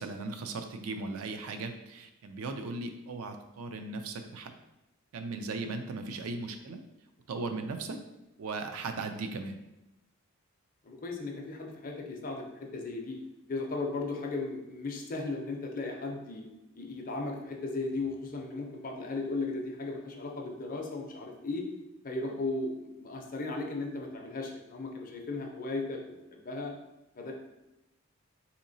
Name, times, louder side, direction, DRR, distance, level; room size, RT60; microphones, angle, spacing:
voice 1, 0.0-4.5 5.1-6.8 7.3-8.0 8.4-9.6, right 3 dB, 75° right, 6 dB, 0.4 m, -37 dB
voice 2, 10.8-13.2 13.5-16.4 16.8-21.7 22.0-22.7 23.0-26.0 26.3-26.7 27.2-27.3, left 3 dB, 40° left, 2 dB, 0.5 m, -36 dB
3.7 x 2.8 x 2.7 m, 0.94 s
head